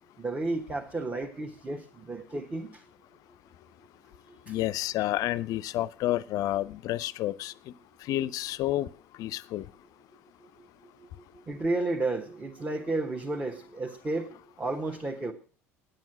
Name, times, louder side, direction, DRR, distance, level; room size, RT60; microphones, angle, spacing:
voice 1, 0.2-2.8 4.3-4.5 10.6-10.7 11.0-11.1 11.3-14.3 14.6-15.3, right 2 dB, 20° right, 1.4 m, -32 dB
voice 2, 4.5-7.5 8.1-8.9 9.2-9.7, left 14 dB, 50° left, 0.5 m, -30 dB
9.2 x 9.1 x 7.6 m
figure-of-eight pair, 65°, 8 cm